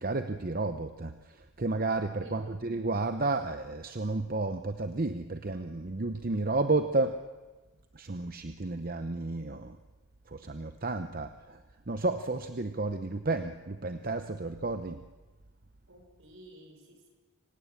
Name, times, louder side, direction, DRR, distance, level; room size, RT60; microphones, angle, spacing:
voice 1, 0.0-7.2 7.9-9.8 10.3-11.6 11.9-15.0, right 3 dB, 40° right, 8 dB, 0.8 m, -32 dB
voice 2, 2.2-2.7 15.9-17.1, right 1 dB, 65° right, 4 dB, 5.7 m, -52 dB
26.0 x 17.0 x 8.9 m, 1.2 s
head